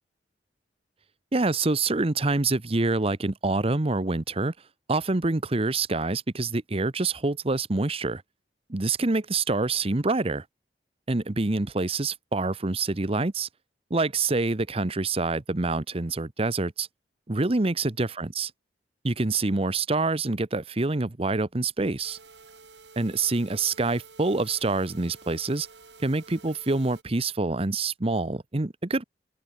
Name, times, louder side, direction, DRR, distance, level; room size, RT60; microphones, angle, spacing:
voice 1, 1.3-4.5 4.9-8.2 8.7-10.4 11.1-13.5 13.9-16.9 17.3-18.5 19.0-22.2 23.0-25.7 26.0-29.0, right 3 dB, 35° right, 0.9 m, -26 dB
sound 1, 22.0-27.0, right 4 dB, 80° right, 4.5 m, -51 dB
head